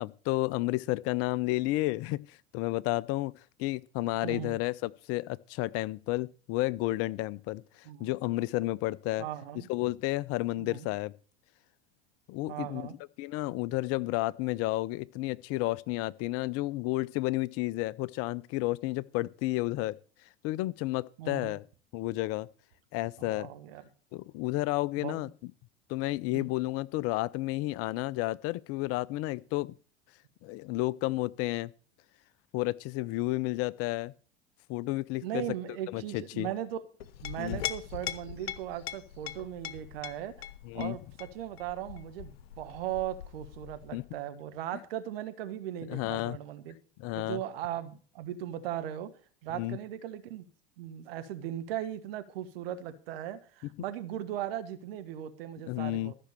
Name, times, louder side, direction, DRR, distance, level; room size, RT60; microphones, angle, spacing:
voice 1, 0.0-3.3 3.6-7.6 8.0-9.2 9.7-11.1 12.3-12.9 13.2-20.0 20.4-21.6 21.9-22.5 22.9-23.5 24.1-25.5 25.9-29.7 30.4-31.7 32.5-34.1 34.7-35.4 35.9-36.5 37.4-37.6 40.7-41.0 43.9-44.0 45.9-46.4 47.0-47.4 49.5-49.8 55.7-56.1, left 18 dB, 50° left, 0.6 m, -31 dB
voice 2, 4.2-4.6 7.8-8.1 9.2-9.7 10.6-10.9 12.5-12.9 21.2-21.5 23.2-23.8 25.0-25.2 26.3-26.5 35.2-36.8 37.2-40.3 40.7-46.8 47.1-49.1 49.4-50.4 50.8-56.1, right 11 dB, 70° right, 1.6 m, -38 dB
Chink clink, 37.0-44.1, left 11 dB, 75° left, 1.1 m, -41 dB
13.5 x 6.1 x 6.9 m
hypercardioid pair, 80°, 31 cm